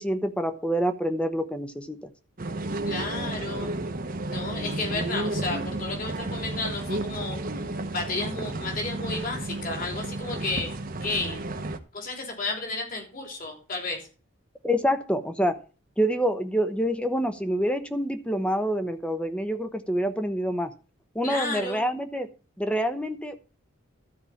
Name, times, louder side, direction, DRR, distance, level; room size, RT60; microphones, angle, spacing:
voice 1, 0.0-2.1 14.6-15.6 16.0-20.7 21.1-22.3 22.6-23.4, equal, 5° left, 9 dB, 0.9 m, -27 dB
sound 1, 2.4-11.8, right 2 dB, 45° right, 1.0 m, -32 dB
voice 2, 2.8-3.7 4.3-7.4 7.9-10.7 11.0-11.4 11.9-14.1 21.2-21.8, left 3 dB, 45° left, 1 dB, 3.4 m, -32 dB
12.5 x 4.8 x 7.2 m, 0.35 s
head